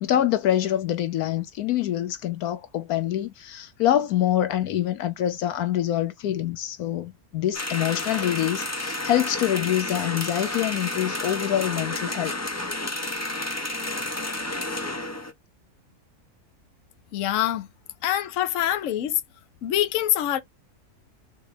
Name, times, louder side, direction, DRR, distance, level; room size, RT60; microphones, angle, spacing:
voice 1, 0.0-12.4, left 12 dB, 80° left, 1.1 m, -25 dB
sound 1, 7.5-15.3, left 2 dB, 20° left, 0.5 m, -31 dB
voice 2, 17.1-17.7 18.0-19.2 19.6-20.4, left 12 dB, 65° left, 1.0 m, -24 dB
3.9 x 3.6 x 3.3 m
omnidirectional pair, 1.6 m